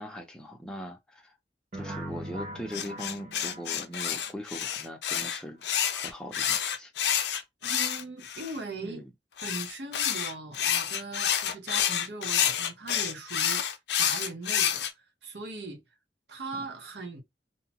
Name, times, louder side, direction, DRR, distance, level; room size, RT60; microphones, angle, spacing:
voice 1, 0.0-1.4 1.7-5.6 5.9-6.9 8.8-9.1 16.5-16.7, equal, 5° left, 0.4 m, -40 dB
sound 1, 1.7-4.6, right 1 dB, 45° right, 1.0 m, -41 dB
sound 2, 2.7-8.6 9.4-14.9, left 9 dB, 70° left, 0.5 m, -28 dB
voice 2, 7.6-9.0 9.4-15.8 16.3-17.2, right 3 dB, 75° right, 0.9 m, -40 dB
2.7 x 2.1 x 2.8 m
head